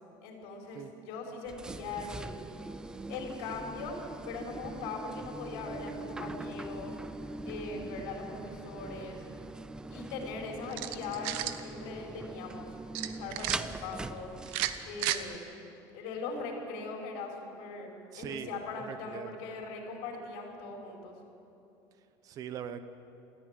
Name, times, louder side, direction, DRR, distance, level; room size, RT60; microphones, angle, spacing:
voice 1, 0.2-2.4 3.1-7.0 7.5-9.2 9.9-12.7 13.0-14.3 14.9-15.5 15.9-21.1, left 3 dB, 70° left, 1 dB, 5.1 m, -40 dB
sound 1, 1.4-15.4, right 2 dB, 5° right, 0.4 m, -42 dB
sound 2, 10.7-11.6 12.9-13.6 14.5-15.2, right 13 dB, 65° right, 1.0 m, -33 dB
voice 2, 18.1-19.3 22.2-22.8, right 8 dB, 35° right, 11 dB, 1.0 m, -41 dB
19.5 x 14.5 x 9.3 m, 2.7 s
cardioid pair, 165°, 10 cm